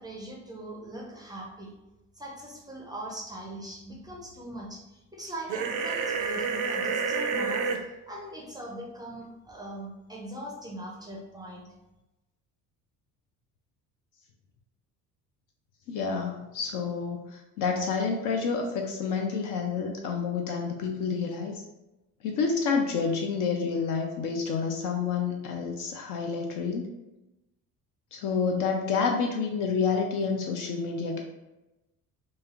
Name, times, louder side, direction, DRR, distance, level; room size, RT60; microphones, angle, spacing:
voice 1, 0.0-1.7 2.1-11.7, right 1 dB, 10° right, -2 dB, 0.5 m, -41 dB
sound 1, 5.5-7.8, right 5 dB, 60° right, 0.5 m, -29 dB
voice 2, 15.9-21.6 22.2-26.9 28.1-31.2, left 5 dB, 45° left, 2 dB, 0.5 m, -29 dB
3.1 x 2.6 x 2.4 m, 0.97 s
figure-of-eight pair, 55°, 47 cm